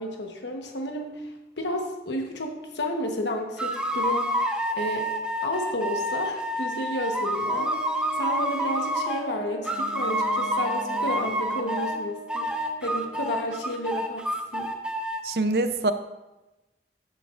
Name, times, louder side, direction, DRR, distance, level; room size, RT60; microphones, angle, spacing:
voice 1, 0.0-5.1 5.4-7.8 8.2-14.3 14.5-14.7, left 1 dB, 85° left, 2 dB, 1.1 m, -32 dB
sound 1, 3.6-9.3 9.6-12.0 12.3-15.2, right 1 dB, 5° right, 0.5 m, -28 dB
Brass instrument, 7.4-14.2, right 1 dB, 20° left, 3.2 m, -40 dB
voice 2, 15.2-15.9, right 2 dB, 60° right, 10 dB, 0.5 m, -24 dB
14.0 x 7.5 x 2.5 m, 1.1 s
head